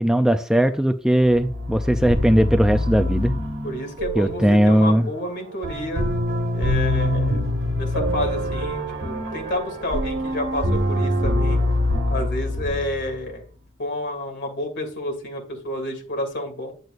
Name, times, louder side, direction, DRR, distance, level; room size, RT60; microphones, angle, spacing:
voice 1, 0.0-3.3 4.2-5.1, right 1 dB, 5° right, 7 dB, 0.4 m, -18 dB
sound 1, 1.3-13.3, left 1 dB, 60° right, 1.6 m, -25 dB
voice 2, 3.6-6.1 6.5-7.4 7.8-11.6 12.1-13.5 13.8-16.7, left 1 dB, 55° left, 3 dB, 2.6 m, -30 dB
10.5 x 7.9 x 2.6 m, 0.41 s
head